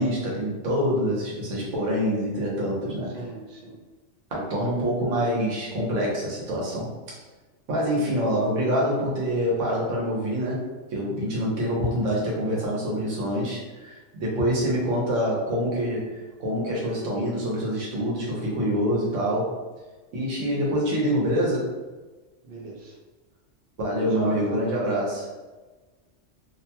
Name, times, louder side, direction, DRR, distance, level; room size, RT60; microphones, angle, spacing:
voice 1, 0.0-3.2 4.3-6.9 7.7-19.6 20.1-21.7 23.8-25.3, equal, 85° right, -4 dB, 1.2 m, -26 dB
voice 2, 3.1-3.8 14.6-15.0 22.4-23.0 24.0-24.6, right 2 dB, 55° right, -2 dB, 0.7 m, -39 dB
2.7 x 2.2 x 2.8 m, 1.2 s
omnidirectional pair, 1.2 m